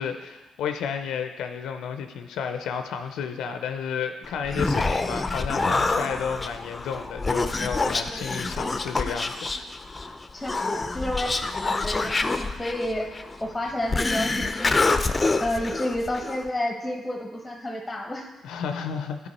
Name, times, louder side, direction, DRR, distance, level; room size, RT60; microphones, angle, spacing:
voice 1, 0.0-9.6 18.4-19.3, left 7 dB, 80° left, 7 dB, 0.4 m, -32 dB
Human voice, 4.2-16.5, left 3 dB, 30° left, 0.5 m, -27 dB
voice 2, 7.7-8.2 10.3-12.2 12.6-13.1 13.4-14.9 15.4-18.3, left 1 dB, 10° left, 2 dB, 1.0 m, -30 dB
10.0 x 4.7 x 4.1 m, 1.1 s
supercardioid pair, 60°, 0 cm